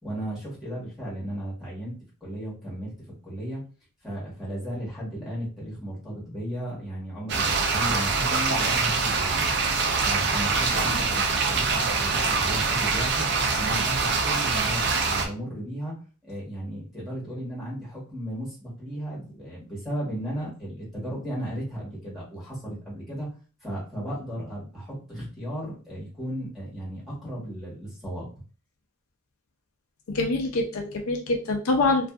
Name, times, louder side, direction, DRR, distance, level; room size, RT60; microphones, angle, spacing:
voice 1, 0.0-2.9 3.2-3.6 4.0-9.5 10.0-13.3 13.5-16.0 16.2-23.3 23.6-28.3, equal, ahead, -7 dB, 1.3 m, -35 dB
sound 1, 7.3-15.3, right 4 dB, 50° right, 0.4 m, -24 dB
voice 2, 30.1-32.1, left 2 dB, 70° left, 2 dB, 0.5 m, -25 dB
2.6 x 2.4 x 2.3 m, 0.37 s
head